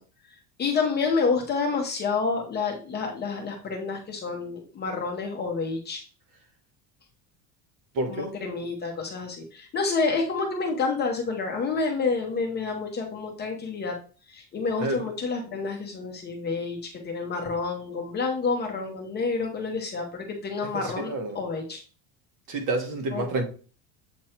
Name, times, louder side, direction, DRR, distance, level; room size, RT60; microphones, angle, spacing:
voice 1, 0.6-6.0 8.1-13.9 14.3-21.8 23.1-23.3, left 4 dB, 20° left, 0.8 m, -29 dB
voice 2, 7.9-8.3 14.8-15.0 20.6-21.4 22.5-23.4, right 2 dB, 40° right, 1.2 m, -29 dB
7.6 x 3.0 x 4.3 m
cardioid pair, 175°, 45 cm